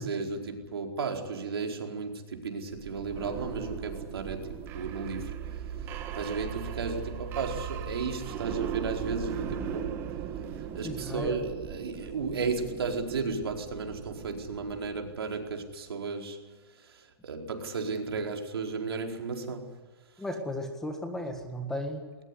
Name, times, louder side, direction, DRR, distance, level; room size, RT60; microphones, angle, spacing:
voice 1, 0.0-5.3 5.8-9.9 10.5-19.7, right 4 dB, 80° right, 3 dB, 4.5 m, -34 dB
sound 1, 2.8-15.5, right 9 dB, 20° right, 1.5 m, -38 dB
voice 2, 10.8-11.4 20.2-22.2, left 1 dB, 5° left, 5 dB, 1.7 m, -35 dB
21.0 x 20.0 x 9.9 m, 1.3 s
hypercardioid pair, 170°, 13 cm